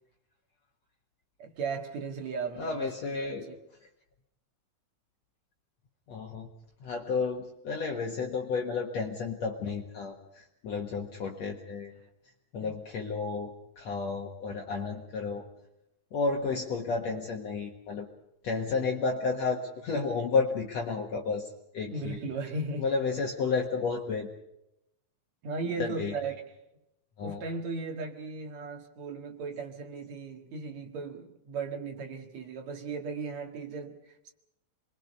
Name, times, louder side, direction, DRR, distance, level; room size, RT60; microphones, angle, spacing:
voice 1, 1.4-2.9 3.3-3.5 12.6-12.8 16.7-16.9 21.9-22.9 25.4-26.4 27.2-34.3, right 4 dB, 55° right, 4 dB, 2.9 m, -36 dB
voice 2, 2.6-3.5 6.1-6.5 6.8-11.9 12.5-15.4 16.1-18.1 18.4-22.2 22.8-24.3 25.8-26.2 27.2-27.4, left 4 dB, 55° left, 0 dB, 2.5 m, -32 dB
28.0 x 22.0 x 5.5 m, 0.83 s
omnidirectional pair, 3.9 m